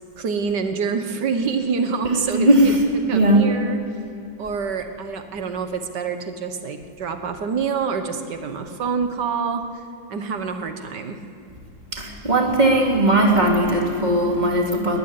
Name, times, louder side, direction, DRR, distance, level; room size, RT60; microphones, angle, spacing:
voice 1, 0.2-2.7 3.1-3.8 4.4-9.8 10.1-11.2, right 5 dB, 65° right, 8 dB, 1.8 m, -26 dB
voice 2, 2.0-2.6 3.1-3.5 11.9-15.0, right 1 dB, 20° right, 0 dB, 2.8 m, -18 dB
19.5 x 14.5 x 9.7 m, 2.4 s
omnidirectional pair, 2.1 m